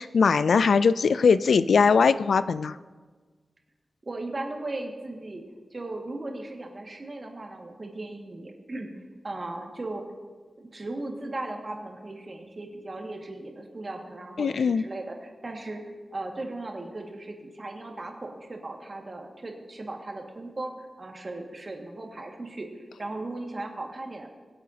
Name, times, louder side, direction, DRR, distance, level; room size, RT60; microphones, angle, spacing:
voice 1, 0.0-2.8 14.4-14.8, left 5 dB, 85° left, 14 dB, 0.3 m, -21 dB
voice 2, 4.0-5.4 5.7-8.9 9.2-10.0 10.6-15.8 16.1-24.3, right 2 dB, 40° right, 1 dB, 1.9 m, -37 dB
23.0 x 7.9 x 2.8 m, 1.4 s
wide cardioid pair, 70°, 0 cm